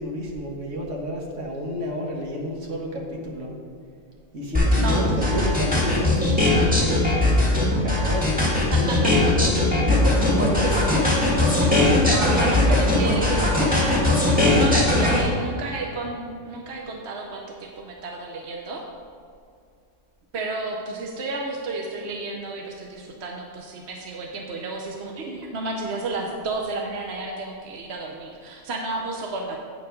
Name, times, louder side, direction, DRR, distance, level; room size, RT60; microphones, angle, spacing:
voice 1, 0.0-3.6 4.3-11.1, equal, 75° right, -1 dB, 1.8 m, -30 dB
sound 1, 4.5-15.2, left 2 dB, 5° right, 1.8 m, -19 dB
voice 2, 4.8-5.3 8.7-9.1 12.0-14.2 14.5-18.8 20.3-29.6, right 2 dB, 60° right, 0 dB, 1.1 m, -32 dB
8.5 x 6.9 x 5.1 m, 2.3 s
omnidirectional pair, 1.3 m